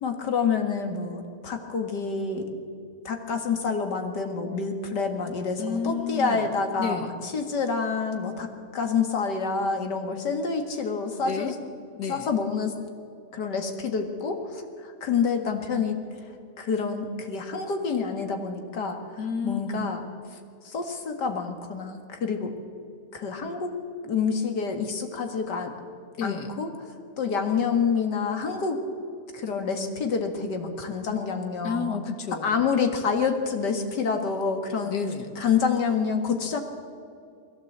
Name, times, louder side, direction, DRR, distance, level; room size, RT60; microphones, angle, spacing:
voice 1, 0.0-2.6 3.0-11.6 12.1-12.8 13.3-16.0 16.3-20.0 20.3-22.5 23.1-23.7 24.0-25.7 26.2-28.8 29.3-32.0 32.4-35.0 35.4-36.6, left 5 dB, 90° left, 5 dB, 2.4 m, -28 dB
voice 2, 5.6-6.5 6.8-7.1 11.3-11.5 12.0-12.3 19.2-19.8 26.2-26.5 31.6-32.6 34.8-35.3, left 6 dB, 75° left, 8 dB, 2.0 m, -31 dB
21.0 x 16.0 x 8.1 m, 2.4 s
omnidirectional pair, 1.8 m